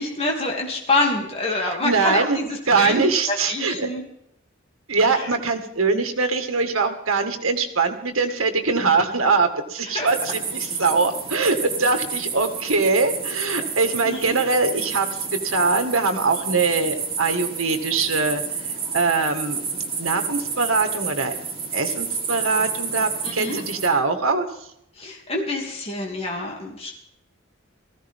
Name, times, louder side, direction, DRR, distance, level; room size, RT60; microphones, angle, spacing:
voice 1, 0.0-4.0 5.2-5.3 9.9-10.1 14.1-14.4 23.2-23.6 25.0-26.9, left 2 dB, 30° left, 0 dB, 2.8 m, -26 dB
voice 2, 1.5-2.4 2.7-3.9 4.9-19.6 20.0-21.3 21.7-24.7, right 4 dB, 85° right, 6 dB, 2.0 m, -22 dB
sound 1, 10.1-23.9, right 5 dB, 30° right, 3.8 m, -30 dB
19.0 x 15.5 x 3.7 m, 0.76 s
head